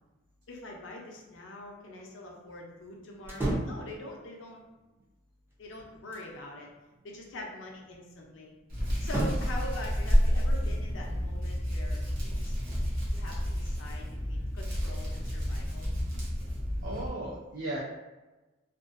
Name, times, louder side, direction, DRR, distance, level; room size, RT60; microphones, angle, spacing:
voice 1, 0.5-4.6 5.6-6.7 7.0-8.5 9.0-12.5 13.1-15.9, left 1 dB, 70° left, 0 dB, 0.5 m, -43 dB
sound 1, 3.2-3.9 5.5-6.4 9.0-9.6, right 1 dB, 10° right, 0.4 m, -32 dB
Hands, 8.7-17.1, equal, 50° right, 0.9 m, -30 dB
voice 2, 16.8-17.8, right 1 dB, 75° right, -4 dB, 0.4 m, -36 dB
2.5 x 2.2 x 2.4 m, 1.1 s
head